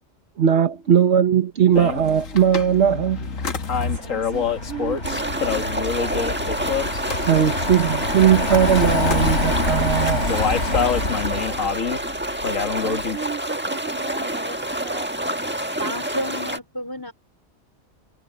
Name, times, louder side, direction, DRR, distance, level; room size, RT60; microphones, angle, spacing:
voice 1, 0.4-3.3 7.1-10.3, right 8 dB, 60° right, 1.3 m, -19 dB
sound 1, 1.7-13.2, left 6 dB, 85° left, 2.0 m, -28 dB
Car passing by, 3.2-11.8, left 2 dB, 65° left, 4.6 m, -26 dB
voice 2, 3.6-6.6 12.4-15.3, right 8 dB, 90° right, 4.1 m, -37 dB
sound 2, 5.0-16.6, right 1 dB, 10° right, 1.5 m, -28 dB
voice 3, 15.8-17.1, equal, 15° left, 4.6 m, -30 dB
omnidirectional pair, 1.3 m